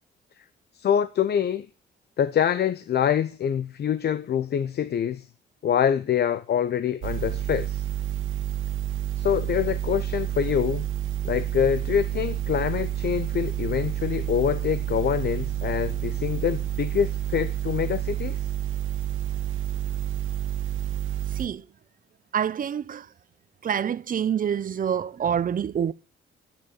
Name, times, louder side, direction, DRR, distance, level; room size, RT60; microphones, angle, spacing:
voice 1, 0.8-1.7 2.2-5.3 5.6-7.9 9.2-10.9 11.2-18.4, left 9 dB, 55° left, 0.8 m, -25 dB
sound 1, 7.0-21.5, right 12 dB, 80° right, 1.3 m, -29 dB
voice 2, 22.3-23.1 23.6-25.9, right 8 dB, 45° right, 0.8 m, -26 dB
10.5 x 9.0 x 9.6 m
cardioid pair, 90°, 20 cm